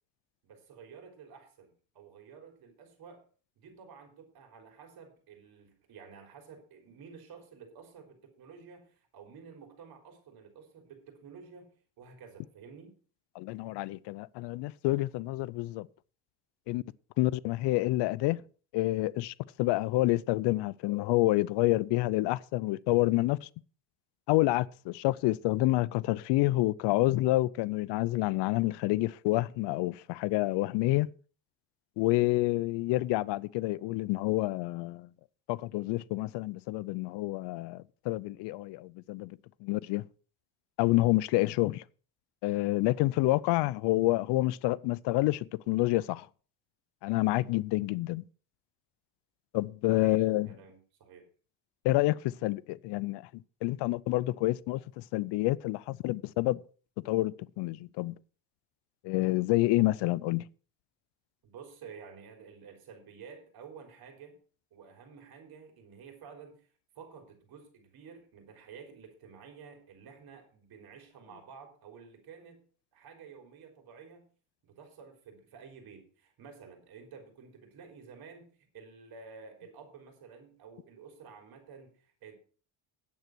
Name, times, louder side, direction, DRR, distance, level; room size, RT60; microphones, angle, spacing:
voice 1, 0.4-3.2 3.6-13.0 49.9-51.3 61.4-64.4 64.7-66.7 67.0-72.6 72.9-74.3 74.6-82.4, right 6 dB, 55° right, 3.8 m, -51 dB
voice 2, 13.4-15.9 16.7-16.8 17.2-18.4 18.7-23.5 24.3-31.1 32.0-35.1 35.5-39.3 39.6-40.0 40.8-41.8 42.4-46.3 47.0-48.2 49.5-50.5 51.8-53.3 53.6-56.6 57.0-58.1 59.0-60.5, left 18 dB, 65° left, 0.5 m, -28 dB
9.5 x 8.1 x 6.0 m
cardioid pair, 135°, 45 cm